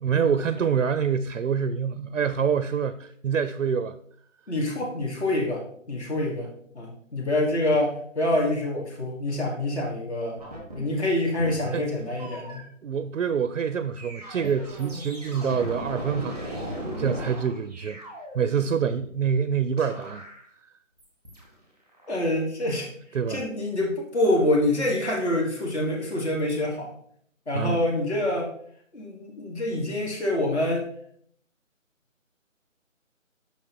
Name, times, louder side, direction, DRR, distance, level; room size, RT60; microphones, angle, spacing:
voice 1, 0.0-4.0 11.7-11.9 12.8-16.5 17.0-18.0 18.3-20.2 23.1-23.4 27.5-27.8, right 7 dB, 75° right, 0.5 m, -26 dB
voice 2, 4.5-6.5 6.7-10.4 10.7-12.7 22.1-22.9 23.3-26.9 27.5-28.5 28.9-30.8, left 1 dB, 55° left, 1.8 m, -26 dB
sound 1, 10.4-10.8 11.4-12.6 13.9-19.4 19.8-20.5 21.0-21.5 21.9-22.1, right 1 dB, 5° left, 0.9 m, -37 dB
7.0 x 5.7 x 2.9 m
figure-of-eight pair, 160°, 40 cm